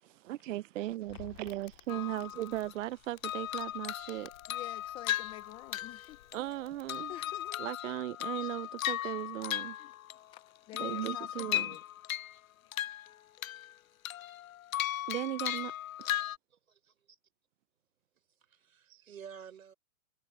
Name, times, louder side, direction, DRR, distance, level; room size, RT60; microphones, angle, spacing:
voice 1, 0.0-4.3 6.3-7.1 7.6-9.8 10.8-11.8 15.1-15.7 16.0-16.2 18.9-19.1, right 15 dB, 65° right, 0.5 m, -37 dB
Crackle, 0.8-7.5, left 14 dB, 55° left, 2.5 m, -58 dB
sound 1, 1.9-2.8 3.2-6.6 6.9-10.3 10.7-12.4 12.7-13.7 14.0-16.4, left 13 dB, 75° left, 0.7 m, -37 dB
voice 2, 4.5-6.2 7.1-7.7 9.8-9.9 10.3-11.8 12.6-12.7, left 15 dB, 15° left, 0.5 m, -49 dB
voice 3, 16.5-17.2 18.4-19.7, right 7 dB, 90° right, 6.3 m, -51 dB
hypercardioid pair, 145°, 41 cm